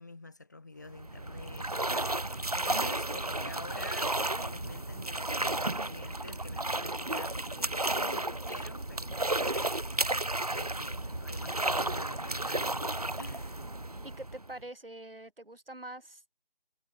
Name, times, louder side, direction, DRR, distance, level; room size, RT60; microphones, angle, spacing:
voice 1, 0.0-10.2 10.5-13.6, left 3 dB, 20° left, 1.5 m, -48 dB
sound 1, 0.9-14.6, right 2 dB, 40° right, 0.6 m, -33 dB
voice 2, 14.0-16.3, right 1 dB, 75° right, 3.0 m, -45 dB
figure-of-eight pair, 165°, 29 cm